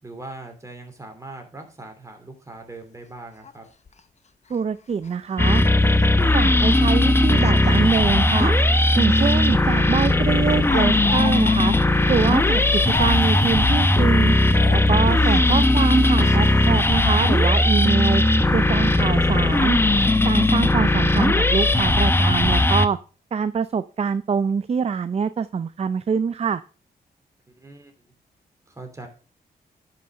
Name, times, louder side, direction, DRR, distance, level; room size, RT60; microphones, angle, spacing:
voice 1, 0.0-3.6 27.5-28.1 28.7-29.1, right 2 dB, 20° right, 3.1 m, -40 dB
Speech, 2.5-2.6 3.0-3.1 3.4-3.5 3.9-4.0 4.5-4.6 4.9-5.1 5.4-5.5 6.3-6.5 7.3-9.4 9.7-9.8 10.2-13.8 14.0-14.2 14.5-16.8 17.4-17.5 17.8-17.9, left 5 dB, 40° left, 0.8 m, -37 dB
voice 2, 4.5-5.6 6.3-8.5 8.9-11.7 12.1-14.3 14.7-18.2 18.5-19.8 20.2-23.0 23.3-26.6, right 6 dB, 40° right, 0.5 m, -24 dB
sound 1, 5.4-22.9, left 2 dB, 15° left, 0.8 m, -18 dB
sound 2, 5.5-21.2, right 2 dB, 55° right, 2.8 m, -42 dB
11.0 x 5.8 x 5.2 m
cardioid pair, 85°, 17 cm